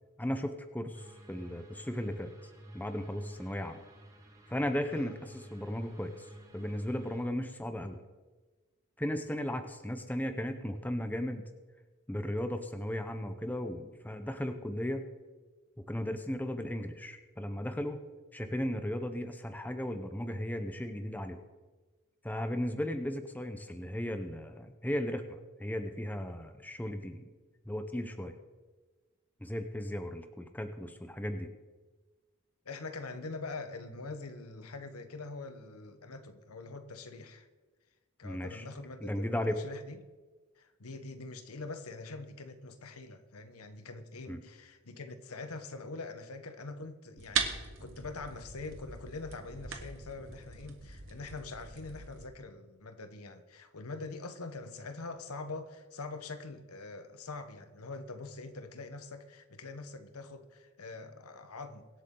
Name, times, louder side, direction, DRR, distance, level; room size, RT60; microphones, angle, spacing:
voice 1, 0.2-2.3 2.7-3.8 4.5-6.3 6.5-8.0 9.0-11.4 12.1-15.1 15.8-18.0 18.3-21.4 22.2-27.3 27.7-28.4 29.4-31.5 38.2-38.6 39.0-39.6 44.3-44.4, equal, 10° left, 0.7 m, -36 dB
sound 1, 0.9-7.2, right 1 dB, 15° right, 1.3 m, -52 dB
voice 2, 32.6-37.5 38.2-40.0 40.6-61.9, left 3 dB, 90° left, 1.1 m, -44 dB
sound 2, 47.2-52.3, right 7 dB, 60° right, 1.2 m, -39 dB
23.5 x 8.1 x 3.8 m
head